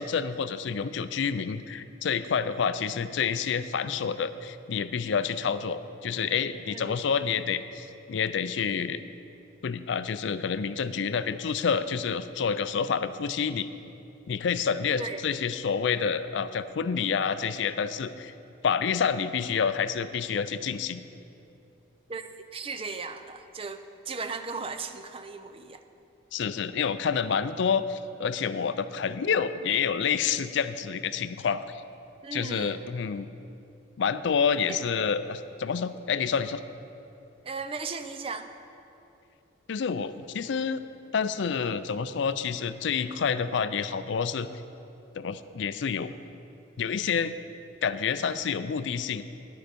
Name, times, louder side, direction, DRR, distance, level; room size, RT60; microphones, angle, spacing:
voice 1, 0.0-9.0 9.6-13.7 14.3-18.3 18.6-21.0 26.3-31.8 32.3-33.3 34.0-36.6 39.7-40.8 41.1-44.5 45.2-46.1 46.8-47.3 47.8-49.2, left 6 dB, 60° left, 13 dB, 0.4 m, -28 dB
voice 2, 6.7-7.1 15.0-15.2 22.1-22.2 22.5-25.8 32.2-32.8 34.7-34.8 37.4-38.5, right 4 dB, 30° right, 8 dB, 0.5 m, -36 dB
10.5 x 9.4 x 5.2 m, 2.8 s
head